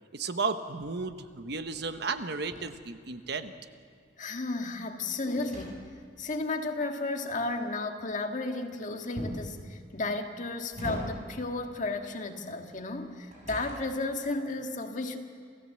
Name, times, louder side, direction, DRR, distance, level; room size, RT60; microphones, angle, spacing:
voice 1, 0.1-3.5, right 4 dB, 65° right, 9 dB, 1.1 m, -33 dB
sound 1, 0.8-3.7 4.1-6.3 9.1-9.6 10.3-11.5 12.8-14.1, equal, 40° right, 6.9 m, -42 dB
voice 2, 4.2-5.9 6.2-15.2, left 2 dB, 45° left, 4 dB, 1.8 m, -33 dB
28.0 x 16.0 x 7.8 m, 2.2 s
head